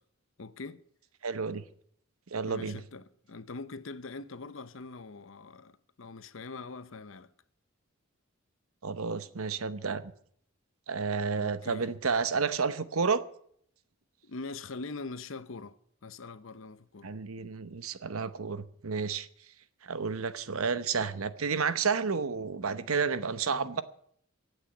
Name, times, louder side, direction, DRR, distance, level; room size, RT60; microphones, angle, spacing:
voice 1, 0.4-0.8 2.5-7.3 11.4-11.9 14.2-15.8 16.0-17.1, left 3 dB, 65° left, 0.8 m, -43 dB
voice 2, 1.2-1.6 2.3-2.8 8.8-10.1 10.9-13.2 17.0-19.3 19.8-23.8, right 5 dB, 80° right, 0.9 m, -31 dB
15.0 x 8.3 x 9.2 m
head